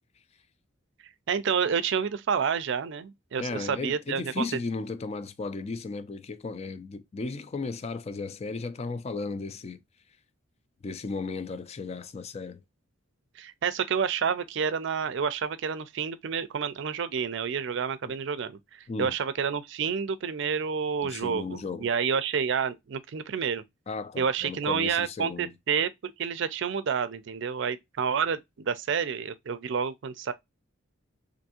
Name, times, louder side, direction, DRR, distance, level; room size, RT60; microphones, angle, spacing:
voice 1, 1.3-4.5 13.4-23.6 24.2-30.3, right 6 dB, 65° right, 0.4 m, -29 dB
voice 2, 3.4-9.8 10.8-12.6 18.9-19.1 21.0-21.9 23.9-25.5, left 4 dB, 35° left, 0.4 m, -35 dB
3.5 x 2.6 x 2.7 m
head